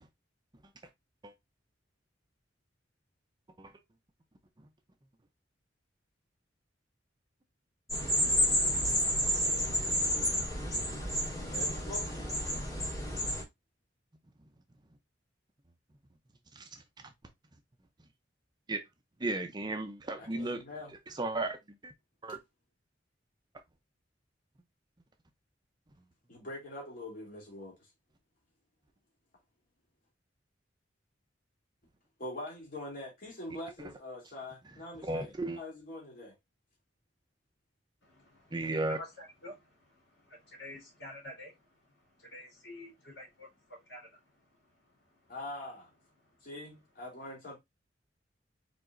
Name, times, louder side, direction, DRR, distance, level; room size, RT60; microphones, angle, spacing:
sound 1, 7.9-13.4, equal, 20° left, 2.1 m, -30 dB
voice 1, 11.4-12.0 20.2-20.9 26.3-27.8 32.2-36.3 45.3-45.9 46.4-47.6, left 1 dB, 50° left, 2.7 m, -43 dB
voice 2, 19.2-20.6 21.1-21.9 22.2-22.4 35.0-35.6 38.5-39.0, right 2 dB, 25° right, 0.6 m, -34 dB
voice 3, 38.0-45.3 46.2-46.5, left 1 dB, 70° left, 3.5 m, -50 dB
4.9 x 4.1 x 2.6 m
head